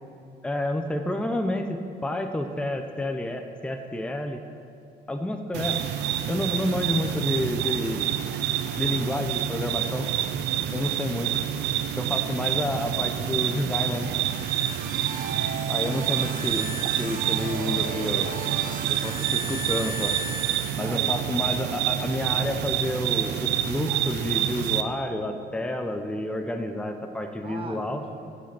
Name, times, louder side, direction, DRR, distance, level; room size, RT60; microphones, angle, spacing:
voice 1, 0.4-4.4 5.1-5.8 6.3-8.1 8.8-10.1 10.7-11.4 12.0-14.1 15.7-18.3 18.9-20.2 20.7-28.0, left 1 dB, 5° left, 5 dB, 0.7 m, -29 dB
sound 1, 5.5-24.8, right 11 dB, 85° right, 0.5 m, -28 dB
sound 2, 13.8-21.4, right 3 dB, 55° right, 1.1 m, -36 dB
voice 2, 14.6-15.0 19.0-19.5 20.8-21.3 27.4-28.2, right 3 dB, 35° right, 4 dB, 0.9 m, -42 dB
14.5 x 5.2 x 7.0 m, 2.6 s
cardioid pair, 110°, 17 cm